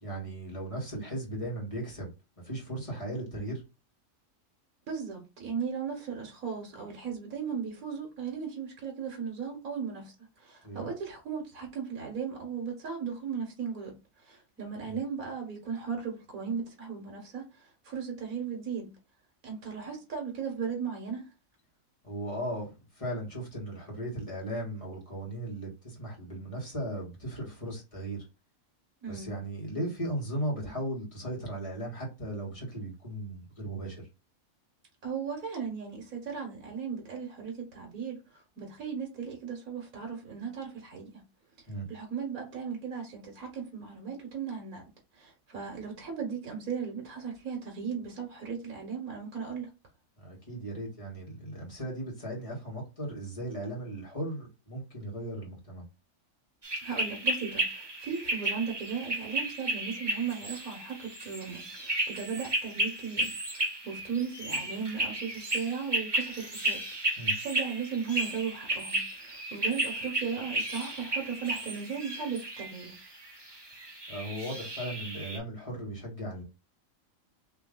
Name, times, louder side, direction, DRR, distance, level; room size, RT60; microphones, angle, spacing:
voice 1, 0.0-2.1 2.4-3.6 10.6-10.9 14.9-15.0 22.0-28.2 29.1-34.1 41.7-41.9 50.2-55.8 67.2-67.4 74.1-76.4, right 1 dB, 25° left, 1.7 m, -37 dB
voice 2, 4.9-18.9 19.4-21.3 29.0-29.3 35.0-41.1 41.9-44.8 45.1-49.7 56.7-73.1, right 6 dB, 80° right, 1.6 m, -37 dB
sound 1, 56.6-75.4, right 1 dB, 20° right, 0.9 m, -34 dB
3.6 x 3.0 x 3.8 m
omnidirectional pair, 1.4 m